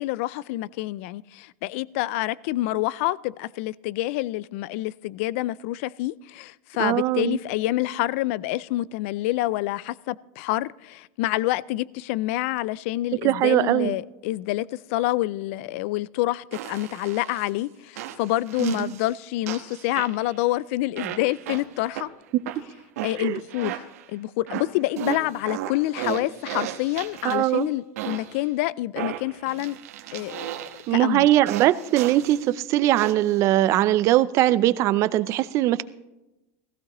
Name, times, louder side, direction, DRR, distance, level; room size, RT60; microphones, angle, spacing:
voice 1, 0.0-22.1 23.0-29.8 30.1-30.5 30.9-31.3, left 17 dB, 60° left, 0.3 m, -27 dB
voice 2, 6.8-7.4 13.2-13.9 18.6-18.8 22.3-22.4 23.2-23.4 27.2-27.7 30.9-35.8, right 14 dB, 40° right, 0.5 m, -21 dB
sound 1, 16.5-17.5 18.0-19.1 19.5-20.4 21.0-22.1 22.5-24.1 24.5-27.6 28.0-28.4 29.0-31.0 31.5-32.4 33.0-33.4, right 13 dB, 90° right, 1.2 m, -35 dB
16.5 x 15.0 x 3.0 m
supercardioid pair, 155°, 8 cm